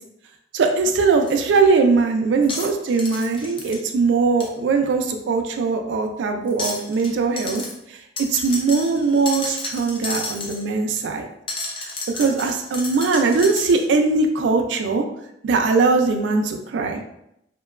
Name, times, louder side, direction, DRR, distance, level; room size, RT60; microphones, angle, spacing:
voice 1, 0.5-11.3 11.8-15.0 15.4-17.0, right 4 dB, 75° right, 5 dB, 0.3 m, -20 dB
sound 1, 1.3-1.4 2.4-3.8 4.4-4.5 6.5-7.1 7.4-7.7 8.2-10.7 11.5-13.8, left 2 dB, 25° left, 0.4 m, -31 dB
2.8 x 2.2 x 2.2 m, 0.80 s
head